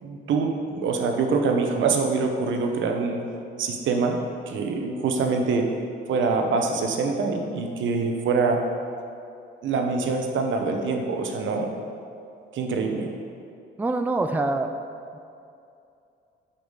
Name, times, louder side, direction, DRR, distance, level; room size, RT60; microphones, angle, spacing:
voice 1, 0.0-3.2 3.6-4.2 4.5-5.7 6.1-8.6 9.6-11.7 12.5-13.1, right 4 dB, 75° right, 3 dB, 1.0 m, -24 dB
voice 2, 13.8-14.7, right 2 dB, 10° right, 7 dB, 0.4 m, -24 dB
5.7 x 5.3 x 6.4 m, 2.5 s
cardioid pair, 90°, 20 cm